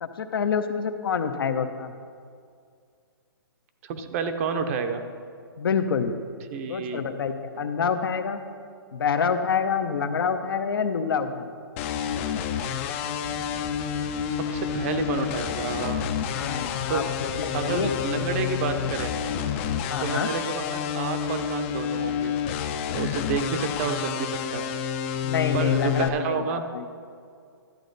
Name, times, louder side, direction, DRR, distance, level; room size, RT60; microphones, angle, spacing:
voice 1, 0.0-1.9 5.6-6.2 6.7-8.4 8.9-11.5 16.3-17.9 19.9-20.3 25.2-26.9, left 6 dB, 65° left, 8 dB, 0.8 m, -27 dB
voice 2, 3.8-5.0 6.5-7.0 7.5-7.7 14.5-16.1 16.9-17.0 17.5-19.1 20.0-22.3 22.9-24.7 25.5-26.6, right 5 dB, 35° right, 7 dB, 0.7 m, -29 dB
sound 1, 11.8-26.1, left 8 dB, 30° left, 0.5 m, -29 dB
sound 2, 13.2-19.6, equal, 5° right, 0.8 m, -43 dB
12.0 x 8.2 x 4.0 m, 2.2 s
hypercardioid pair, 140°, 13 cm